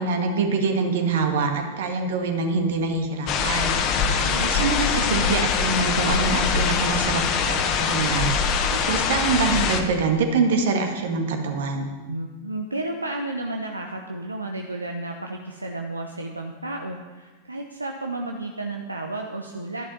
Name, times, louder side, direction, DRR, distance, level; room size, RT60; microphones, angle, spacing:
voice 1, 0.0-3.8 4.4-8.3 8.7-11.9, right 4 dB, 60° right, 4 dB, 1.9 m, -25 dB
sound 1, 3.3-9.8, left 6 dB, 35° left, 1.3 m, -23 dB
voice 2, 3.8-4.5 12.1-19.9, right 2 dB, 80° right, 2 dB, 0.9 m, -32 dB
12.5 x 11.0 x 5.6 m, 1.3 s
figure-of-eight pair, 90°, 0 cm